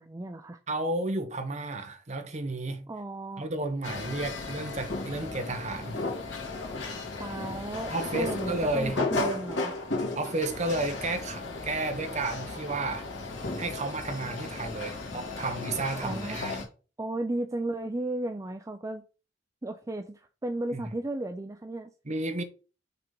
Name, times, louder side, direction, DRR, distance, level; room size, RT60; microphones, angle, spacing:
voice 1, 0.0-0.6 2.9-3.5 7.2-9.9 16.0-16.4 17.0-19.0 19.6-21.9, right 2 dB, 20° right, 0.4 m, -35 dB
voice 2, 0.7-2.9 3.4-6.0 7.9-9.0 10.1-13.0 13.6-16.6 20.7-20.9 22.0-22.4, right 2 dB, 40° right, 1.0 m, -32 dB
sound 1, 3.8-16.7, left 3 dB, 85° left, 2.3 m, -35 dB
5.8 x 3.6 x 5.3 m
head